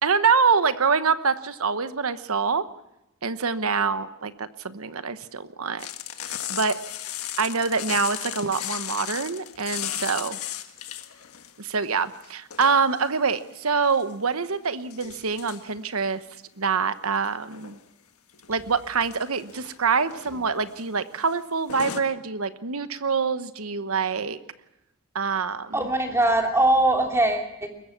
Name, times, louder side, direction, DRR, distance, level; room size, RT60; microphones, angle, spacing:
voice 1, 0.0-2.7 3.2-5.9 6.5-6.8 7.4-10.4 11.6-16.2 16.6-17.8 18.5-24.4 25.1-25.9, right 5 dB, 80° right, 12 dB, 1.1 m, -25 dB
sound 1, 5.8-11.5 11.8-13.1 13.7-14.1 14.9-15.6 17.1-17.8 18.3-18.6 18.9-19.8 20.0-20.3 20.7-20.9 21.1-21.3 21.7-22.0, left 10 dB, 90° left, 1.6 m, -35 dB
voice 2, 25.7-27.7, right 1 dB, 10° right, 3 dB, 2.9 m, -21 dB
22.0 x 21.0 x 5.9 m, 0.89 s
head